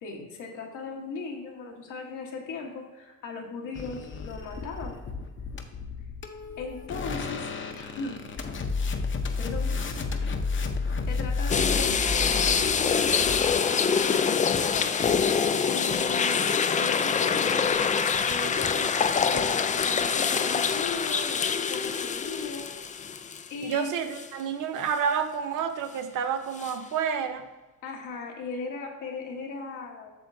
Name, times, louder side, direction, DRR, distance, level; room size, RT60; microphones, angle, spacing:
voice 1, 0.0-5.0 6.6-7.4 7.7-8.2 9.4-9.7 11.1-14.9 15.7-17.6 18.3-22.7 23.5-23.9 27.8-30.1, left 3 dB, 85° left, 0 dB, 1.4 m, -37 dB
sound 1, 3.7-13.6, left 4 dB, 40° left, 0.8 m, -32 dB
sound 2, 11.5-23.7 24.1-24.3 26.6-26.7, left 6 dB, 25° left, 0.3 m, -25 dB
voice 2, 23.6-27.5, right 7 dB, 85° right, 8 dB, 0.7 m, -29 dB
8.1 x 6.5 x 2.7 m, 1.2 s
cardioid pair, 90°, 30 cm